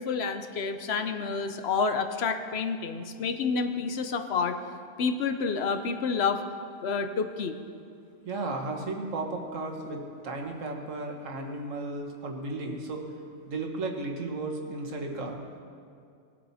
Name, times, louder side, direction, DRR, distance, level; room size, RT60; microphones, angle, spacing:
voice 1, 0.0-4.6 5.0-6.4 6.8-7.6, left 5 dB, 60° left, 8 dB, 1.0 m, -29 dB
voice 2, 8.3-13.0 13.5-15.4, right 2 dB, 80° right, 2 dB, 1.7 m, -34 dB
20.0 x 7.9 x 4.2 m, 2.4 s
omnidirectional pair, 1.3 m